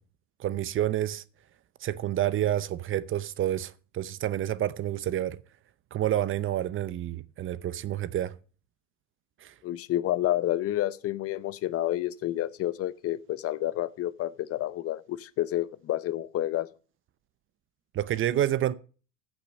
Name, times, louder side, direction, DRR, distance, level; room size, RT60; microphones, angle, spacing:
voice 1, 0.4-1.2 1.8-5.4 5.9-8.3 9.4-9.5 17.9-18.8, right 12 dB, 35° right, 0.7 m, -29 dB
voice 2, 9.6-16.7, left 14 dB, 40° left, 0.7 m, -29 dB
14.5 x 6.2 x 5.3 m
hypercardioid pair, 100°, 38 cm